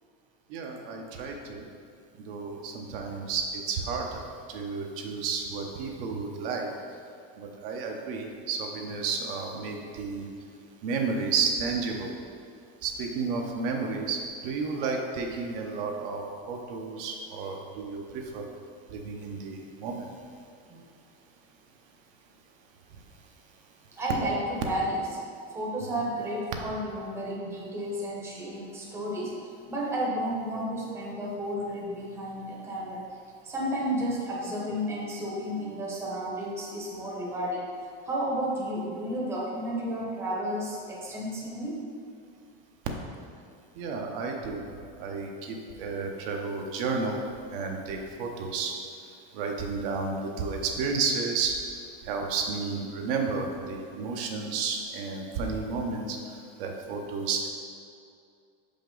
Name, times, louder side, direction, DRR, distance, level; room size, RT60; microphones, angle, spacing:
voice 1, 0.5-1.6 2.3-4.2 4.5-6.7 7.4-10.3 10.8-12.1 12.8-18.4 18.9-20.1 43.8-44.6 45.0-47.2 47.5-48.7 49.3-51.6 52.1-56.2 56.6-57.5, right 4 dB, 65° right, 1 dB, 0.8 m, -32 dB
voice 2, 24.0-25.0 25.5-29.3 29.7-33.0 33.4-37.6 38.0-41.8, equal, 10° right, -5 dB, 0.8 m, -32 dB
5.7 x 5.2 x 3.8 m, 2.4 s
cardioid pair, 170°, 29 cm